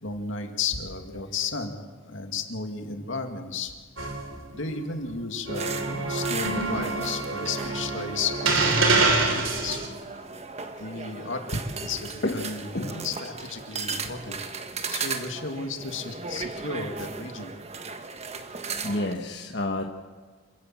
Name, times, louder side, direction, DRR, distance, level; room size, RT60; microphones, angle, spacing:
voice 1, 0.0-3.7 4.5-9.8 10.8-14.4 14.9-17.5, left 4 dB, 75° left, 5 dB, 2.4 m, -33 dB
sound 1, 4.0-4.9 5.5-9.9, right 3 dB, 85° right, 3.2 m, -26 dB
sound 2, 5.5-19.1, right 4 dB, 35° right, 1.3 m, -36 dB
voice 2, 12.2-13.0 18.8-19.8, left 2 dB, 60° left, 2 dB, 1.3 m, -30 dB
27.5 x 15.5 x 7.7 m, 1.5 s
head